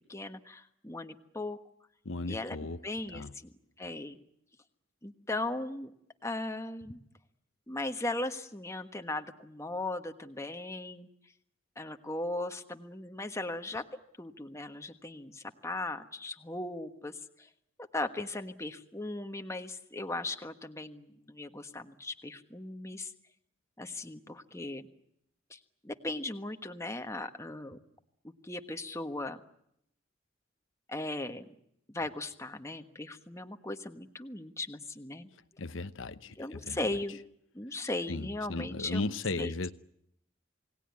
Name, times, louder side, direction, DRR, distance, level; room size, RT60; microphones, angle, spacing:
voice 1, 0.1-1.6 2.3-2.6 2.8-4.2 5.0-5.9 6.2-7.0 7.7-11.1 11.8-13.8 14.2-17.5 17.9-23.1 23.8-24.8 25.5-27.8 28.2-29.4 30.9-31.5 31.9-35.3 36.4-37.2 37.5-39.7, left 2 dB, 15° left, 1.4 m, -38 dB
voice 2, 2.0-2.8 3.1-3.3 35.6-36.8 38.1-39.7, left 2 dB, 85° left, 1.0 m, -36 dB
28.5 x 19.0 x 9.7 m
head